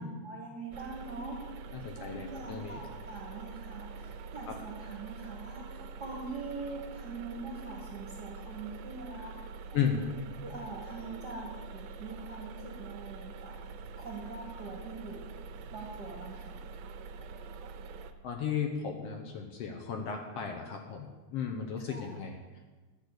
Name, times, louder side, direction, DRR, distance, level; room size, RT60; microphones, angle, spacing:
voice 1, 0.0-9.3 9.7-10.0 10.4-13.5 14.0-15.4 15.7-16.6 21.9-22.2, right 3 dB, 50° right, 0 dB, 1.3 m, -43 dB
sound 1, 0.7-18.1, right 4 dB, 75° right, 1.7 m, -45 dB
voice 2, 1.7-2.8 4.5-4.6 9.7-10.0 18.2-22.4, left 7 dB, 70° left, 3 dB, 1.6 m, -34 dB
10.5 x 5.3 x 8.0 m, 1.3 s
omnidirectional pair, 3.4 m